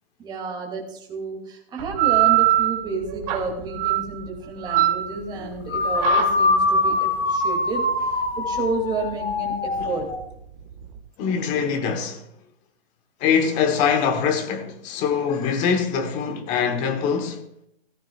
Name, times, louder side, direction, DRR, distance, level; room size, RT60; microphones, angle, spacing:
voice 1, 0.2-10.1, right 3 dB, 15° right, 2.6 m, -31 dB
sound 1, 1.8-11.0, right 14 dB, 35° right, 1.7 m, -24 dB
sound 2, 5.7-10.2, left 2 dB, 80° left, 1.9 m, -23 dB
voice 2, 11.2-12.2 13.2-17.5, left 6 dB, 25° left, 1.1 m, -23 dB
16.0 x 14.0 x 2.4 m
hypercardioid pair, 155°, 32 cm